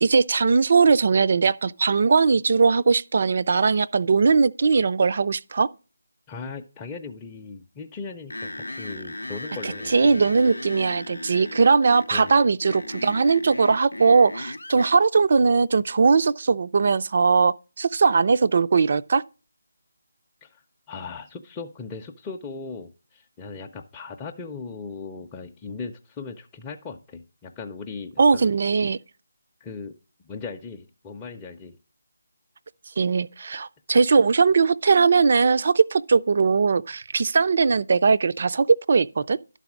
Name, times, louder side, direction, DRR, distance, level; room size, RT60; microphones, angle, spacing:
voice 1, 0.0-5.7 9.6-19.2 28.2-29.0 33.0-39.4, right 4 dB, 45° right, 0.4 m, -20 dB
voice 2, 6.3-10.2 12.1-12.4 20.4-20.6 20.9-28.5 29.6-29.9 30.2-31.8, left 4 dB, 15° left, 0.5 m, -38 dB
sound 1, 8.3-14.9, left 2 dB, 80° left, 0.6 m, -36 dB
11.5 x 4.1 x 5.9 m
figure-of-eight pair, 155°, 0 cm